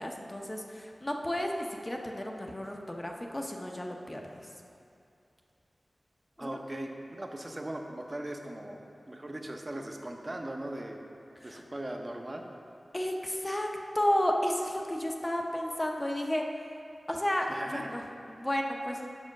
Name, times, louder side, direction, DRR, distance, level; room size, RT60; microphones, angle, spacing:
voice 1, 0.0-4.5 6.4-6.6 11.4-11.6 12.9-16.4 17.1-19.1, left 1 dB, 20° left, 1 dB, 0.7 m, -32 dB
voice 2, 6.4-11.0 11.4-12.5 17.5-17.9, right 1 dB, 30° right, 3 dB, 0.7 m, -39 dB
7.4 x 4.9 x 6.4 m, 2.6 s
wide cardioid pair, 90°, 0 cm